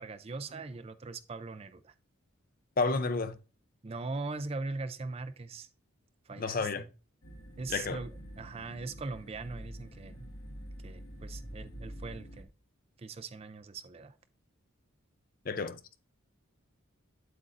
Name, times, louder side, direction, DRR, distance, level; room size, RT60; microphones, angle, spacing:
voice 1, 0.0-1.9 3.8-5.7 6.3-6.9 7.6-10.3 10.8-12.5 13.0-14.2, right 3 dB, 30° right, 0.4 m, -40 dB
voice 2, 2.8-3.4 6.4-6.8 7.7-8.0 15.5-15.8, left 4 dB, 40° left, 0.5 m, -30 dB
sound 1, 7.2-12.4, equal, 90° left, 1.6 m, -46 dB
8.7 x 7.9 x 2.5 m
head